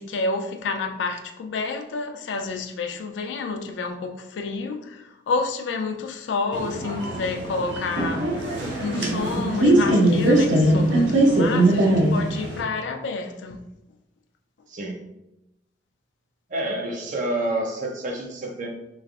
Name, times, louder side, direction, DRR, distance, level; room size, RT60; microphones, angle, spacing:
voice 1, 0.0-13.6, left 4 dB, 80° left, 0.4 m, -29 dB
sound 1, 6.5-12.6, right 1 dB, 85° right, 0.6 m, -21 dB
voice 2, 14.7-15.0 16.5-18.7, right 1 dB, 45° right, 0.5 m, -28 dB
3.1 x 2.4 x 2.4 m
head